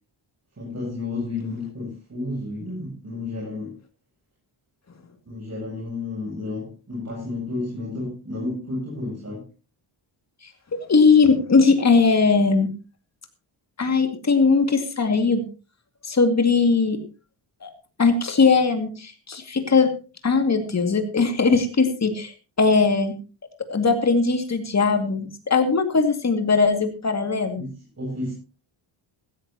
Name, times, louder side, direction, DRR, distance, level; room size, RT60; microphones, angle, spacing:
voice 1, 0.6-3.7 5.2-9.4 27.6-28.3, left 2 dB, 30° right, -4 dB, 7.7 m, -31 dB
voice 2, 10.9-12.7 13.8-15.4 16.0-17.0 17.6-17.7 18.0-19.9 20.2-22.3 22.6-23.1 23.7-27.6, left 4 dB, 35° left, 6 dB, 2.3 m, -19 dB
16.0 x 16.0 x 2.9 m, 0.33 s
wide cardioid pair, 150°, 48 cm